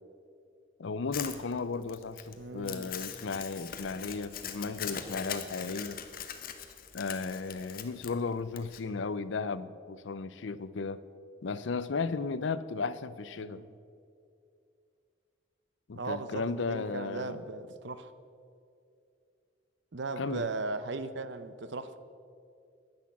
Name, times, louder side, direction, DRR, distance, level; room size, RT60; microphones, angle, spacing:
voice 1, 0.8-6.0 6.9-11.0 11.4-13.6 15.9-17.4 20.2-20.5, left 4 dB, 75° left, 0.5 m, -35 dB
Crumpling crinkling, 1.1-8.8, left 8 dB, 45° left, 0.9 m, -41 dB
voice 2, 2.4-2.9 13.4-13.7 15.9-18.1 19.9-22.0, right 3 dB, 65° right, 0.7 m, -37 dB
10.5 x 10.5 x 7.2 m
head